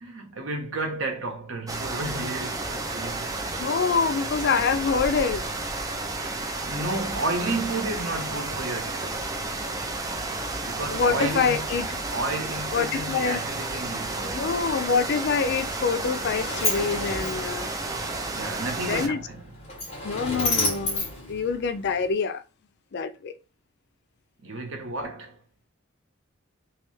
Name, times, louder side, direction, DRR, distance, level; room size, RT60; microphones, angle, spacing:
voice 1, 0.0-3.3 6.6-9.4 10.6-11.6 12.1-14.4 18.3-19.5 24.4-25.4, right 2 dB, 70° right, 1.0 m, -32 dB
sound 1, 1.7-19.1, right 2 dB, 20° right, 0.5 m, -32 dB
voice 2, 3.6-5.4 10.9-11.9 12.7-13.4 14.2-17.7 18.8-19.2 20.0-22.4 22.9-23.3, left 5 dB, 55° left, 0.4 m, -26 dB
Sliding door, 15.7-22.1, left 2 dB, 30° left, 1.5 m, -32 dB
3.2 x 3.0 x 3.1 m
head